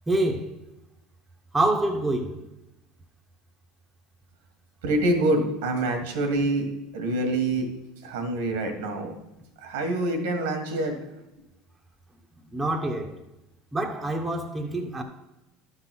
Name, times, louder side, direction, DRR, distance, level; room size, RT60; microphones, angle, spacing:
voice 1, 0.1-0.5 1.5-2.4 12.5-13.1 13.7-15.0, right 2 dB, 10° right, 1.1 m, -26 dB
voice 2, 4.8-6.7 6.9-7.7 8.0-9.1 9.6-11.0, right 2 dB, 90° right, 1.7 m, -26 dB
12.0 x 4.0 x 6.1 m
supercardioid pair, 125°, 0 cm